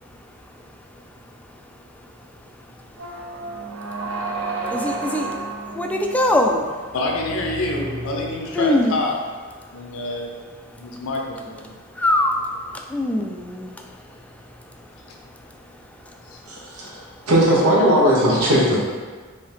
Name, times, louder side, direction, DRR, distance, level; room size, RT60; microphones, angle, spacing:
sound 1, 3.0-9.0, right 2 dB, 65° right, 0.5 m, -32 dB
voice 1, 4.6-5.3 5.7-6.8 8.5-8.9 10.9-11.0 11.9-14.8 15.6-15.7 16.0-16.4, left 1 dB, 5° left, 2 dB, 0.3 m, -23 dB
voice 2, 6.9-9.1 9.7-10.3 10.8-11.6 16.3-16.4, left 2 dB, 70° left, 0 dB, 0.6 m, -27 dB
voice 3, 16.5-18.8, equal, 80° right, -4 dB, 1.2 m, -18 dB
5.2 x 2.8 x 3.4 m, 1.5 s
head